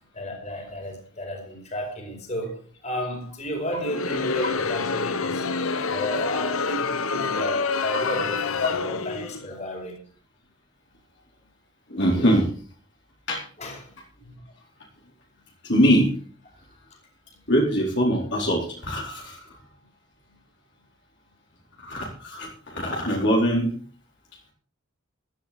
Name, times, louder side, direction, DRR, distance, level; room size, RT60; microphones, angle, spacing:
voice 1, 0.1-5.5 5.8-10.0 13.6-13.9 14.2-14.4, equal, 35° left, 4.9 m, -33 dB
Crowd, 3.8-9.5, left 4 dB, 90° left, 1.1 m, -27 dB
voice 2, 11.9-12.5 13.3-13.4 15.7-16.1 17.5-19.4 21.8-23.7, equal, 55° left, 4.2 m, -22 dB
15.5 x 12.5 x 4.3 m
head